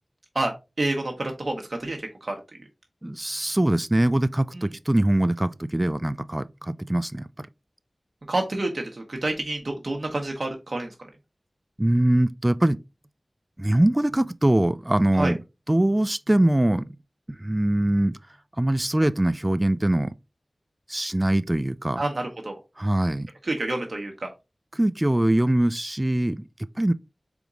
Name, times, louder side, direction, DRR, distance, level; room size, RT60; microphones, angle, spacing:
voice 1, 0.3-2.4 4.5-4.7 8.3-10.9 15.2-15.3 22.0-22.6 23.4-24.3, right 2 dB, 65° right, 0.8 m, -28 dB
voice 2, 3.0-7.5 11.8-12.8 13.6-15.4 15.7-16.9 17.4-18.2 18.6-20.1 20.9-22.0 22.8-23.3 24.7-26.4 26.8-26.9, right 1 dB, 20° right, 0.3 m, -22 dB
4.0 x 3.5 x 3.6 m
wide cardioid pair, 45°, 0 cm